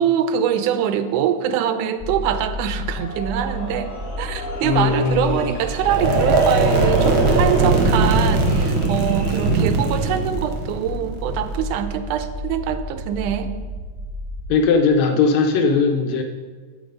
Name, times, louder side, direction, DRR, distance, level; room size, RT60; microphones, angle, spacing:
voice 1, 0.0-13.5, right 9 dB, 85° right, 10 dB, 2.1 m, -23 dB
sound 1, 2.0-14.6, left 1 dB, 5° right, 0.9 m, -32 dB
sound 2, 2.9-10.2, left 1 dB, 35° left, 1.2 m, -37 dB
voice 2, 4.6-5.5 9.5-9.7 14.5-16.2, left 4 dB, 80° left, 4 dB, 1.7 m, -19 dB
sound 3, 5.8-11.8, right 3 dB, 65° right, 1.3 m, -19 dB
8.5 x 6.0 x 5.1 m, 1.4 s
omnidirectional pair, 3.5 m